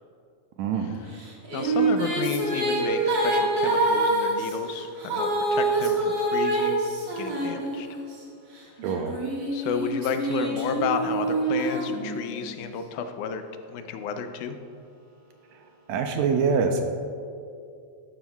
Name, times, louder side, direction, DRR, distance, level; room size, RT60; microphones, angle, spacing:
voice 1, 0.6-0.9 8.8-9.1 15.9-16.8, right 5 dB, 80° right, 5 dB, 1.7 m, -24 dB
Female singing, 1.2-8.1 8.8-12.5, right 2 dB, 40° right, 1.9 m, -26 dB
voice 2, 1.5-6.8 7.2-7.9 9.5-13.4 13.7-14.6, left 6 dB, 85° left, 8 dB, 2.1 m, -32 dB
13.0 x 10.5 x 2.3 m, 2.4 s
omnidirectional pair, 3.4 m